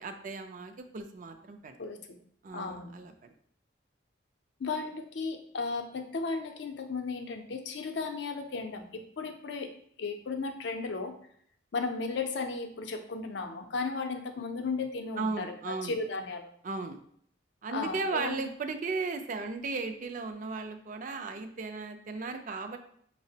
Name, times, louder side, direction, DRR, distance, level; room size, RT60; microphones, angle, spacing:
voice 1, 0.0-1.8 2.4-3.3 15.2-16.0 16.6-17.0 17.6-22.8, right 3 dB, 45° right, 7 dB, 0.4 m, -36 dB
voice 2, 1.8-2.2 2.5-2.9 4.6-9.7 10.0-11.2 11.7-16.5 17.7-18.4, left 4 dB, 70° left, 6 dB, 0.5 m, -35 dB
5.7 x 2.0 x 2.7 m, 0.64 s
head